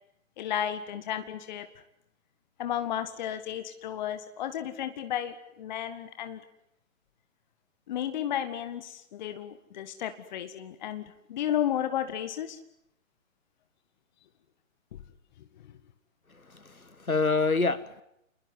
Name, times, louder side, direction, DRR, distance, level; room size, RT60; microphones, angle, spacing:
voice 1, 0.4-1.7 2.6-6.4 7.9-12.6 14.9-15.0 15.6-15.7, left 10 dB, 35° left, 10 dB, 1.7 m, -33 dB
voice 2, 16.5-18.0, left 3 dB, 85° left, 16 dB, 1.9 m, -27 dB
29.0 x 21.0 x 9.5 m, 0.81 s
figure-of-eight pair, 130°, 41 cm